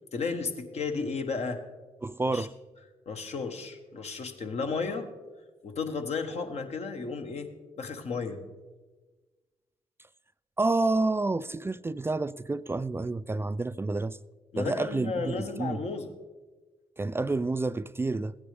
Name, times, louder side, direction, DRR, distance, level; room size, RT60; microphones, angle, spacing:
voice 1, 0.1-1.6 2.3-2.5 3.1-5.1 5.6-8.4 14.5-16.1, left 4 dB, 60° left, 1.2 m, -33 dB
voice 2, 2.0-2.5 10.0-10.1 10.6-14.2 14.6-15.8 17.0-18.4, right 3 dB, 20° right, 0.3 m, -29 dB
15.5 x 9.5 x 3.4 m
supercardioid pair, 45°, 12 cm